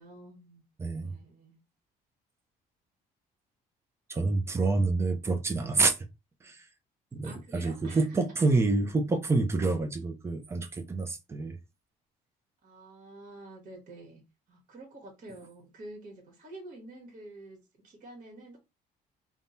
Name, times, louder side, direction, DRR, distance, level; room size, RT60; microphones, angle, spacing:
voice 1, 0.0-0.6 0.9-1.6 4.5-5.0 6.4-6.6 7.2-8.2 12.6-14.2 14.5-18.6, right 2 dB, 55° right, 1.4 m, -49 dB
voice 2, 0.8-1.1 4.1-6.0 6.4-6.7 7.1-11.6, right 3 dB, 15° right, 0.5 m, -27 dB
3.6 x 2.2 x 2.6 m
cardioid pair, 110°, 17 cm